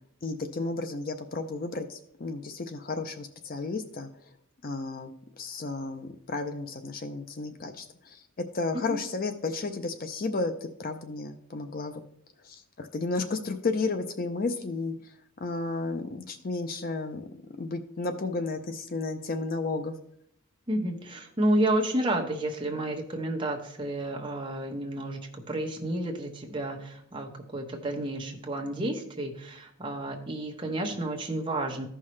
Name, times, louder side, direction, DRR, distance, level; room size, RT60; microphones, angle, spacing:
voice 1, 0.2-4.1 4.6-8.2 8.5-12.0 12.4-14.9 15.4-17.3 17.6-19.9, left 3 dB, 40° left, 8 dB, 0.5 m, -33 dB
voice 2, 20.7-31.9, right 1 dB, 20° right, 1 dB, 1.1 m, -31 dB
14.5 x 5.6 x 3.2 m, 0.71 s
head